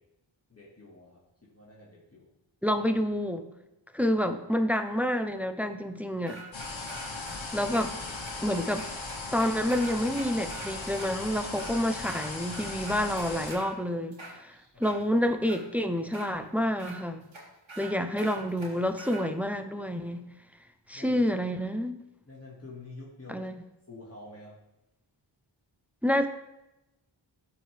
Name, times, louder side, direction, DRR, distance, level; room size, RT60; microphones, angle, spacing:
voice 1, 0.5-2.3 7.5-7.7 14.7-15.0 20.9-21.1 22.3-23.5 23.9-24.6, left 2 dB, 30° left, -6 dB, 2.1 m, -48 dB
voice 2, 2.6-3.5 3.9-6.4 7.5-7.9 8.4-8.9 9.3-17.2 17.8-20.3 20.9-22.0 23.3-23.5 26.0-26.3, equal, 5° right, 7 dB, 0.6 m, -28 dB
sound 1, 6.3-7.3 7.7-7.8 8.3-8.4 8.8-10.7 11.0-11.1 11.5-12.2 12.5-13.7 14.1-15.0 15.5-15.6 16.1-16.3 16.8-16.9 17.3-17.4 17.7-17.9 18.2-19.2, right 3 dB, 80° right, 2.4 m, -44 dB
sound 2, 6.5-13.5, left 3 dB, 75° left, 1.4 m, -38 dB
13.5 x 4.7 x 3.4 m, 0.92 s
wide cardioid pair, 50°, 47 cm